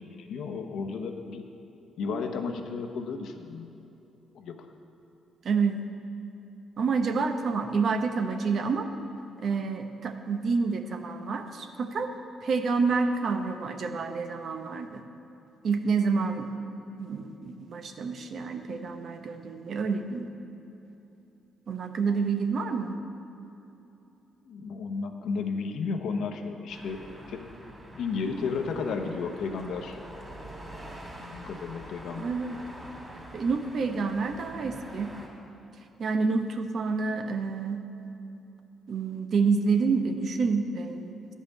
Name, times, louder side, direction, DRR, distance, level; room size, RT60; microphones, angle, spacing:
voice 1, 0.0-1.4 2.0-3.7 4.3-4.8 24.4-27.5 27.9-30.0 31.2-32.3, left 5 dB, 75° left, 5 dB, 0.9 m, -33 dB
voice 2, 5.4-5.9 6.8-8.9 9.4-12.1 12.4-15.0 15.6-16.5 17.0-20.3 21.7-23.0 32.2-32.6 33.3-35.1 36.0-37.8 38.9-41.1, right 4 dB, 55° right, 7 dB, 0.8 m, -28 dB
sound 1, 26.7-35.3, right 1 dB, 15° right, 2.5 m, -45 dB
10.0 x 5.6 x 8.4 m, 2.9 s
cardioid pair, 90°, 0 cm